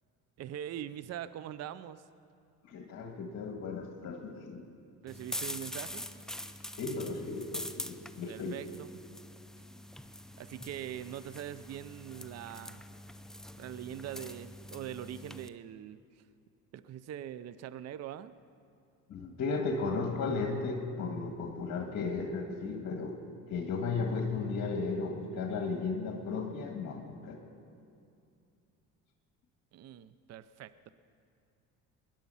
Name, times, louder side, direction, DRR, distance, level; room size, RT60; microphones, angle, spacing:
voice 1, 0.4-2.0 5.0-6.1 8.3-8.9 10.4-12.9 13.6-16.2 16.7-18.3 29.7-30.9, right 10 dB, 45° right, 15 dB, 0.6 m, -42 dB
voice 2, 2.6-4.6 6.8-8.6 19.1-23.2 23.5-27.4, left 4 dB, 50° left, 2 dB, 1.7 m, -35 dB
sound 1, 5.1-15.5, left 1 dB, ahead, 0.5 m, -44 dB
20.5 x 10.5 x 5.6 m, 2.5 s
supercardioid pair, 90°, 35 cm